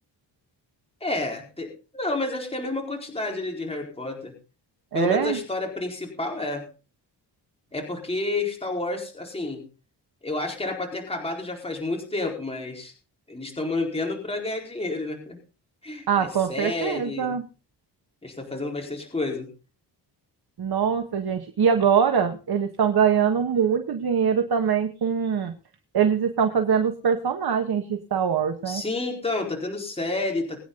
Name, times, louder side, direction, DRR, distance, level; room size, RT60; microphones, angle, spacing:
voice 1, 1.0-4.3 4.9-6.7 7.7-9.6 10.2-12.9 13.3-15.4 15.8-17.4 18.2-19.5 28.7-30.6, left 2 dB, 15° left, 1 dB, 4.6 m, -30 dB
voice 2, 4.9-5.4 16.1-17.4 20.6-25.5 25.9-28.8, right 7 dB, 60° right, 5 dB, 1.7 m, -23 dB
23.0 x 9.6 x 3.9 m, 0.33 s
wide cardioid pair, 140°, 43 cm